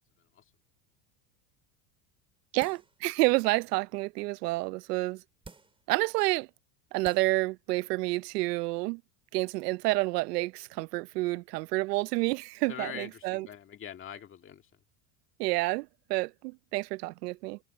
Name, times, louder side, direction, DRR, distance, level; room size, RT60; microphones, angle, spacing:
voice 1, 2.5-5.2 5.9-6.5 6.9-9.0 9.3-13.5 15.4-17.6, right 22 dB, 85° right, 0.8 m, -29 dB
sound 1, 2.6-3.0 3.5-3.6 5.4-5.9 6.6-6.7 7.0-7.5 7.8-7.9, right 4 dB, 10° right, 4.3 m, -51 dB
voice 2, 12.7-14.6, left 9 dB, 25° left, 2.2 m, -43 dB
supercardioid pair, 150°, 46 cm